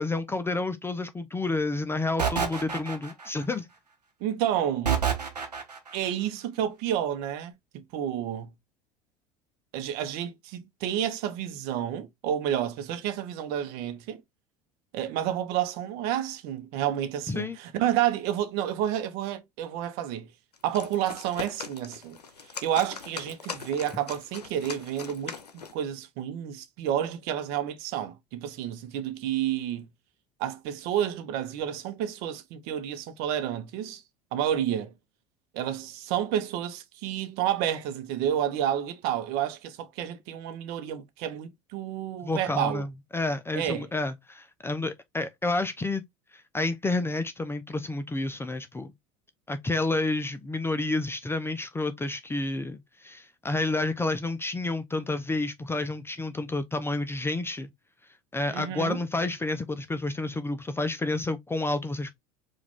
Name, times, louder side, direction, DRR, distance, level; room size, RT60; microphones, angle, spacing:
voice 1, 0.0-3.7 17.3-17.6 42.2-46.0 46.5-48.9 49.5-57.7 58.3-62.1, left 2 dB, 10° left, 0.5 m, -30 dB
sound 1, 2.2-3.4 4.9-6.0, right 7 dB, 90° right, 0.9 m, -28 dB
voice 2, 4.2-5.0 5.9-8.5 9.7-14.2 14.9-20.3 20.6-22.2 22.6-29.9 30.4-34.0 34.3-34.9 35.5-42.8 43.5-43.9 58.5-59.0, right 10 dB, 55° right, 0.8 m, -30 dB
sound 2, 20.5-25.8, left 5 dB, 85° left, 0.7 m, -41 dB
4.8 x 2.5 x 3.5 m
figure-of-eight pair, 70°, 20 cm